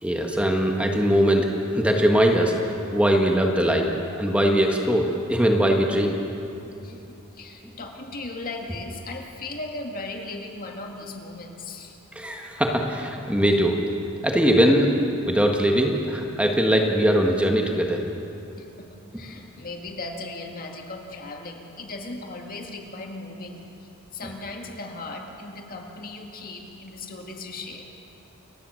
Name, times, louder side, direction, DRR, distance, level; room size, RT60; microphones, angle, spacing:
voice 1, 0.0-3.9 4.2-6.2 12.1-13.8 14.2-14.9 15.2-18.0, equal, 5° right, 1 dB, 1.5 m, -21 dB
voice 2, 6.8-12.0 18.6-27.9, left 2 dB, 45° left, 2 dB, 2.1 m, -37 dB
29.0 x 15.5 x 6.4 m, 2.7 s
head